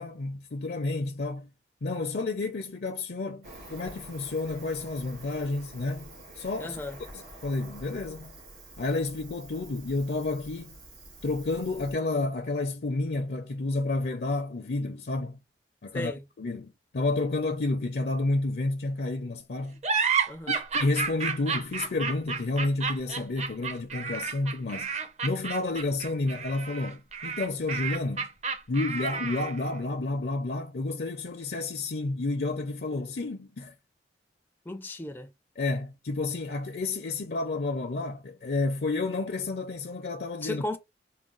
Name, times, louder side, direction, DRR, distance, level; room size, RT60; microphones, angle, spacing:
voice 1, 0.0-1.5 1.8-6.8 7.1-8.3 8.8-10.8 11.2-15.4 15.8-16.1 16.4-19.8 20.5-24.9 25.2-28.3 28.7-33.7 35.6-40.6, left 2 dB, 60° left, 0.5 m, -30 dB
Cricket, 3.4-11.9, right 1 dB, 65° right, 2.9 m, -48 dB
voice 2, 6.6-7.0 15.9-16.2 20.3-20.6 34.7-35.3 40.4-40.8, left 1 dB, 10° left, 0.3 m, -35 dB
sound 1, 19.8-29.7, right 5 dB, 40° right, 0.6 m, -31 dB
4.7 x 2.2 x 3.8 m
head